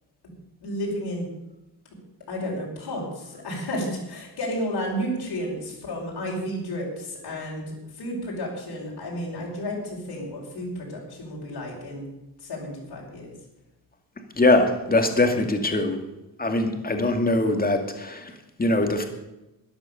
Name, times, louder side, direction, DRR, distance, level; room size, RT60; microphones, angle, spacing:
voice 1, 0.6-1.3 2.3-12.1 12.4-13.3, equal, 75° left, -4 dB, 5.5 m, -32 dB
voice 2, 14.3-16.0 16.4-19.0, left 2 dB, 20° left, 4 dB, 2.3 m, -22 dB
13.5 x 10.5 x 7.0 m, 0.97 s
cardioid pair, 110°, 42 cm